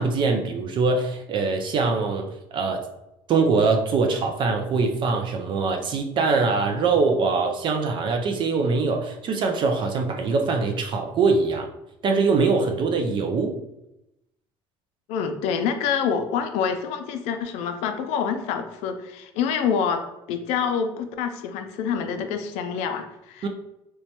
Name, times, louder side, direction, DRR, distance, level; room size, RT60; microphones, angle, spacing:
voice 1, 0.0-2.8 3.3-11.7 12.0-13.5 23.4-23.5, right 4 dB, 45° right, 4 dB, 0.4 m, -23 dB
voice 2, 15.1-20.0 20.3-23.5, left 7 dB, 80° left, 7 dB, 0.4 m, -26 dB
3.0 x 2.2 x 2.8 m, 0.87 s
cardioid pair, 110°, 11 cm